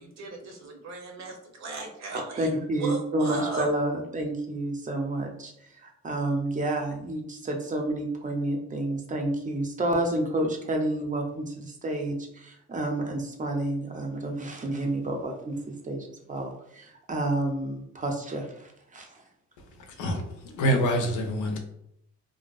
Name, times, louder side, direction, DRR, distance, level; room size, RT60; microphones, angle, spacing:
voice 1, 0.0-3.7, right 3 dB, 60° right, 1 dB, 0.8 m, -37 dB
voice 2, 2.4-15.6 15.8-19.2, right 1 dB, 25° right, 2 dB, 0.5 m, -30 dB
voice 3, 20.0-21.6, equal, 80° left, 4 dB, 0.6 m, -26 dB
2.6 x 2.1 x 2.3 m, 0.73 s
cardioid pair, 90°, 30 cm